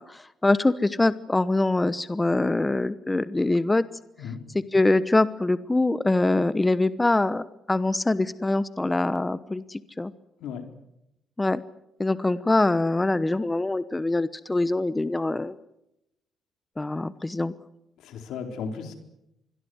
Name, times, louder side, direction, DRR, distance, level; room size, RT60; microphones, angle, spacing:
voice 1, 0.0-3.8 4.5-10.1 11.4-11.6 12.0-15.5 16.8-17.5, left 2 dB, 15° left, 15 dB, 1.0 m, -24 dB
voice 2, 18.0-18.9, left 6 dB, 85° left, 5 dB, 4.2 m, -35 dB
26.5 x 21.5 x 8.0 m, 0.85 s
cardioid pair, 90°, 0 cm